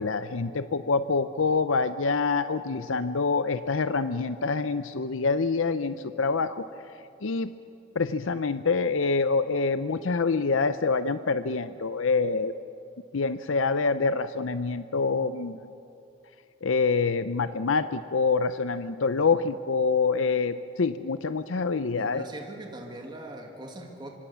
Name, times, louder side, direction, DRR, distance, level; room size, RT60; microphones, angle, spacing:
voice 1, 0.0-6.6 6.9-7.5 7.9-12.5 13.1-15.7 16.6-22.3, left 4 dB, 85° left, 12 dB, 0.6 m, -26 dB
voice 2, 21.9-24.1, right 1 dB, 25° right, 1 dB, 2.3 m, -41 dB
25.0 x 25.0 x 7.0 m, 2.6 s
head